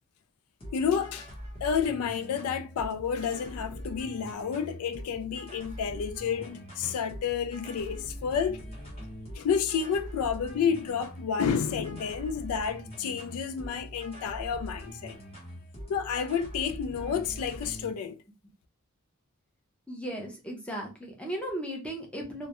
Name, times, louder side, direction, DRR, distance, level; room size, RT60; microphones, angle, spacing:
sound 1, 0.6-17.9, equal, 25° left, 0.9 m, -43 dB
voice 1, 0.7-1.3 1.6-8.6 9.3-15.2 15.9-18.2, left 7 dB, 85° left, 0.3 m, -30 dB
voice 2, 19.9-22.5, right 1 dB, 5° left, 0.5 m, -36 dB
2.3 x 2.0 x 2.8 m
head